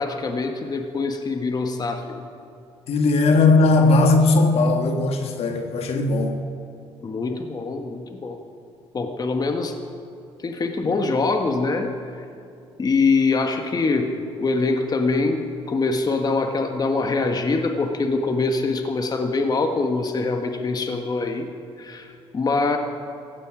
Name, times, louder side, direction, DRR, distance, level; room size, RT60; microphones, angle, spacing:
voice 1, 0.0-2.3 7.0-8.4 8.9-9.8 10.4-12.2 12.8-14.1 14.4-21.5 21.8-22.8, left 3 dB, 35° left, 5 dB, 1.5 m, -24 dB
voice 2, 2.9-6.5 10.8-11.0, left 3 dB, 60° left, 5 dB, 1.7 m, -18 dB
17.0 x 15.5 x 5.0 m, 2.5 s
supercardioid pair, 70°, 12 cm